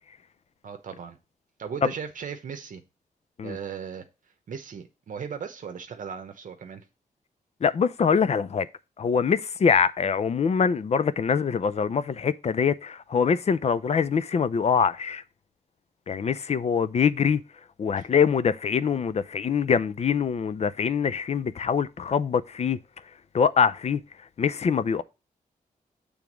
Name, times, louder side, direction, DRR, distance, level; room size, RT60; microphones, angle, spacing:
voice 1, 0.6-1.2 1.6-2.8 3.4-4.0 4.5-6.9 18.0-18.1, right 7 dB, 65° right, 0.8 m, -37 dB
voice 2, 7.6-8.7 9.0-15.2 16.1-17.4 17.8-22.8 23.3-24.0 24.4-25.0, left 6 dB, 50° left, 0.5 m, -24 dB
7.0 x 3.5 x 6.0 m
wide cardioid pair, 105°, 15 cm